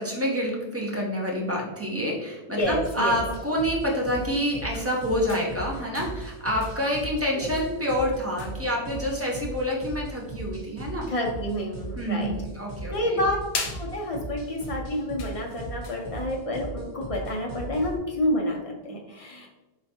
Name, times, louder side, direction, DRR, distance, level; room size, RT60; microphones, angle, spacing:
voice 1, 0.0-11.1 11.9-13.2, equal, 20° right, -2 dB, 0.5 m, -27 dB
voice 2, 2.5-3.2 7.4-7.5 11.1-12.3 12.9-13.4 13.7-19.5, left 1 dB, 45° left, 0 dB, 0.5 m, -29 dB
sound 1, 2.6-18.0, right 2 dB, 65° right, 1.2 m, -38 dB
sound 2, 3.8-16.4, left 5 dB, 75° left, 0.9 m, -43 dB
3.8 x 3.3 x 2.8 m, 1.1 s
omnidirectional pair, 1.1 m